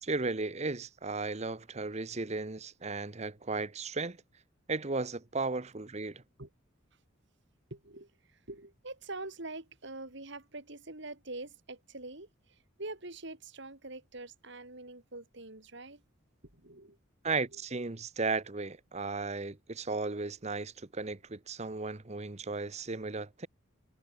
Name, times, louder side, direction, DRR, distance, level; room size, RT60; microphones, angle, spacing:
voice 1, 0.0-4.2 4.7-6.2 17.2-23.5, right 3 dB, 35° right, 1.0 m, -35 dB
voice 2, 7.7-16.0 16.5-17.0 17.5-17.6, right 2 dB, 60° right, 3.7 m, -45 dB
head